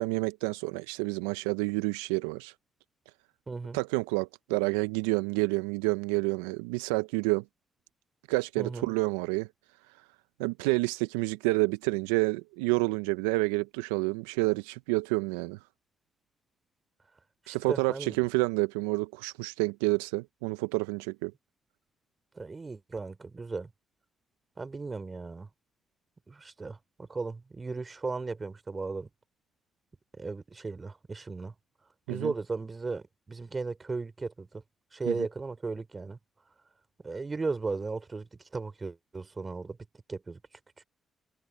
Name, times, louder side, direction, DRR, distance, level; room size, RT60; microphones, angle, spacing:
voice 1, 0.0-2.5 3.7-7.4 8.3-9.5 10.4-15.6 17.5-21.3 32.1-32.3 35.1-35.2, right 24 dB, 85° right, 0.5 m, -29 dB
voice 2, 3.5-3.8 8.6-8.9 17.5-18.2 22.4-23.7 24.6-25.5 26.3-29.1 30.2-31.5 32.1-34.6 34.9-36.2 37.0-39.8 40.1-40.4, right 4 dB, 35° right, 3.5 m, -36 dB
hypercardioid pair, 45°, 0 cm